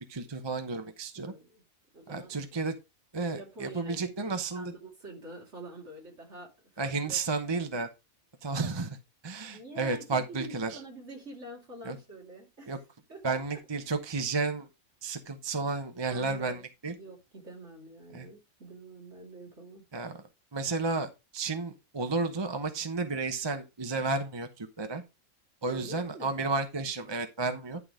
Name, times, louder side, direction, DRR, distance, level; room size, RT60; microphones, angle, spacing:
voice 1, 0.1-1.3 2.1-2.7 3.1-4.7 6.8-7.9 8.4-9.0 9.2-10.8 11.8-12.0 12.7-12.8 13.2-14.7 15.0-16.9 18.1-18.3 19.9-20.2 20.5-25.0 25.6-27.8, right 3 dB, 25° right, 0.8 m, -32 dB
voice 2, 1.1-1.6 1.9-2.3 3.2-7.2 9.5-12.8 13.1-13.4 16.1-16.6 17.0-19.9 25.7-26.4, right 2 dB, 55° right, 3.1 m, -46 dB
11.0 x 3.9 x 4.9 m
omnidirectional pair, 1.4 m